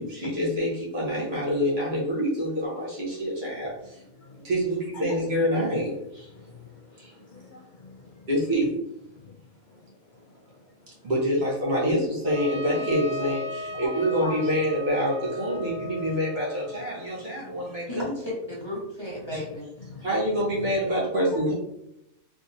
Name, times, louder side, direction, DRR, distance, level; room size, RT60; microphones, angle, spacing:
voice 1, 0.0-4.0 4.4-6.3 7.0-7.1 8.3-8.8 11.0-18.2 19.3-19.4 20.0-21.5, equal, 50° right, -5 dB, 1.2 m, -26 dB
voice 2, 4.2-4.5 4.9-5.2 6.3-8.3 9.1-9.4 9.7-11.1 13.7-13.9 14.2-14.4 15.7-16.2 16.7-17.9 19.8-20.1 20.6-20.7 21.3-21.4, left 3 dB, 65° left, -1 dB, 0.5 m, -45 dB
Trumpet, 12.3-17.1, equal, 25° right, 1.0 m, -37 dB
voice 3, 17.9-19.6, left 1 dB, 20° left, -6 dB, 0.9 m, -34 dB
3.6 x 2.7 x 2.6 m, 0.84 s
omnidirectional pair, 1.4 m